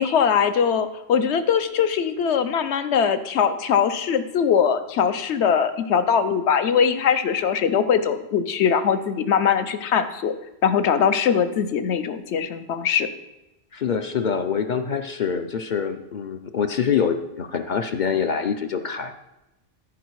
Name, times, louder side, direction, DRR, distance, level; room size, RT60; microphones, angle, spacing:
voice 1, 0.0-10.3 10.6-13.1, left 7 dB, 70° left, 11 dB, 1.0 m, -21 dB
voice 2, 13.7-19.1, left 7 dB, 50° left, 8 dB, 0.6 m, -25 dB
14.0 x 4.9 x 4.7 m, 0.94 s
omnidirectional pair, 1.2 m